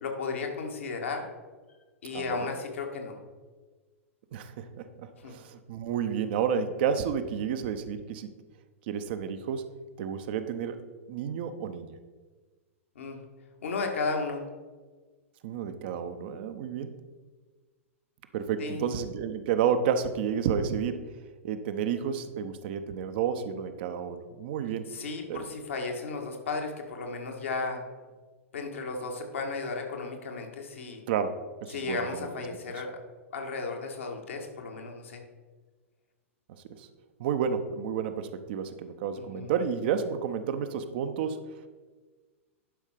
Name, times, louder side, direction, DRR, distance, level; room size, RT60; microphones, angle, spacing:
voice 1, 0.0-1.3 2.0-3.2 5.2-5.4 13.0-13.2 13.6-14.5 18.6-18.8 24.9-27.9 28.5-31.0 31.7-32.9 33.3-35.2 39.3-39.5, left 4 dB, 65° left, 2 dB, 1.7 m, -34 dB
voice 2, 2.1-2.5 4.3-8.3 8.9-9.7 10.0-10.8 11.1-12.0 15.4-16.9 18.3-21.1 21.4-24.9 25.3-25.5 31.1-32.3 36.7-36.9 37.2-41.4, right 7 dB, 45° right, 9 dB, 0.7 m, -31 dB
11.0 x 5.4 x 5.1 m, 1.4 s
figure-of-eight pair, 100°, 7 cm